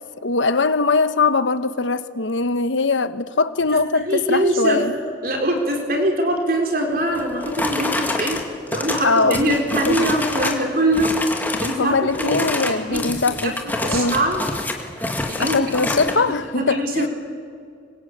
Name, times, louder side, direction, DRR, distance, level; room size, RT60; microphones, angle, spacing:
voice 1, 0.2-4.9 9.0-9.6 9.9-10.1 11.8-13.6 13.9-14.2 15.4-17.1, left 3 dB, 90° left, 1.1 m, -21 dB
voice 2, 4.1-4.9 5.2-8.4 8.7-11.2 11.6-13.5 13.8-14.4 15.2-15.7 16.1-17.1, right 1 dB, 50° right, 4.5 m, -23 dB
sound 1, 7.1-10.7 10.9-11.8 12.1-16.2, left 2 dB, 10° left, 2.1 m, -26 dB
26.5 x 23.5 x 8.7 m
head